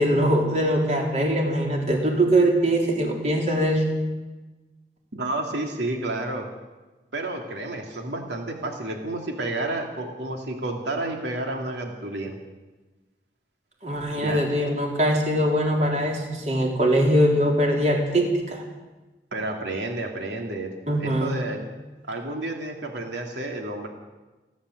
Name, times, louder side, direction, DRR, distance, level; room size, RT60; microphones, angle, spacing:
voice 1, 0.0-3.8 13.8-18.6 20.9-21.3, right 1 dB, 40° right, 0 dB, 4.0 m, -22 dB
voice 2, 5.1-6.5 7.1-12.4 14.2-14.4 19.3-20.7 21.0-21.6 22.1-23.9, right 2 dB, 90° right, 2 dB, 2.8 m, -30 dB
29.5 x 11.5 x 7.9 m, 1.2 s
head